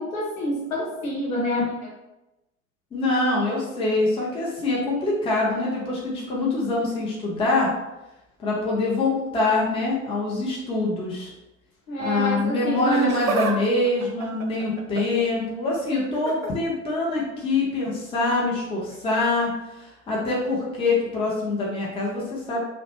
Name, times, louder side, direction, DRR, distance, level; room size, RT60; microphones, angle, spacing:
voice 1, 0.0-1.9 11.9-13.1, equal, 75° left, -4 dB, 1.0 m, -27 dB
voice 2, 2.9-7.7 8.4-11.3 12.0-22.6, left 2 dB, 15° left, -4 dB, 0.6 m, -24 dB
Laughter, 12.7-13.6 13.9-15.2 16.1-16.5 17.8-18.0 18.9-19.0, right 6 dB, 75° right, 0.5 m, -30 dB
2.9 x 2.1 x 2.9 m, 0.97 s
figure-of-eight pair, 70°, 41 cm